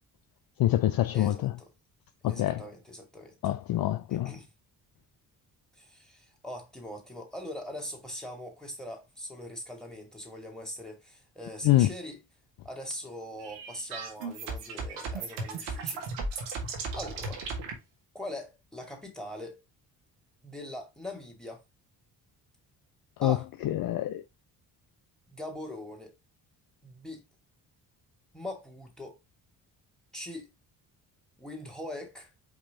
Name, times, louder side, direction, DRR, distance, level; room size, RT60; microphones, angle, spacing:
voice 1, 0.6-1.5 2.2-2.6 3.4-4.3 11.6-11.9 23.2-23.4 23.6-24.2, left 14 dB, 50° left, 0.4 m, -25 dB
voice 2, 1.1-1.7 2.2-3.4 4.1-4.5 5.7-12.2 12.6-16.1 16.5-16.6 17.0-17.5 18.1-19.6 20.4-21.6 23.2-23.5 25.3-26.1 26.8-27.2 28.3-29.2 30.1-30.5 31.4-32.3, left 1 dB, ahead, 2.3 m, -41 dB
sound 1, 13.4-17.7, right 4 dB, 90° right, 1.3 m, -36 dB
5.1 x 2.8 x 3.5 m
hypercardioid pair, 50°, 47 cm